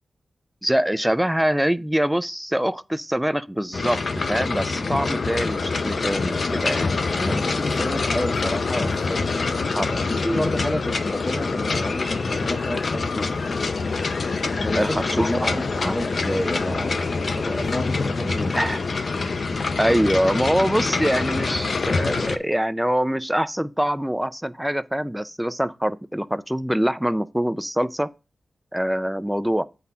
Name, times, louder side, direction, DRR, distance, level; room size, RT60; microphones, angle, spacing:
voice 1, 0.6-4.0 4.3-7.4 9.7-10.1 14.7-16.0 18.5-18.8 19.8-28.1 28.7-29.7, equal, 5° right, 0.3 m, -24 dB
sound 1, 3.7-22.4, left 4 dB, 50° left, 0.5 m, -25 dB
voice 2, 7.2-9.6 10.0-13.4 14.6-18.7, left 1 dB, 15° left, 0.9 m, -30 dB
8.4 x 4.1 x 5.5 m
wide cardioid pair, 145°, 0 cm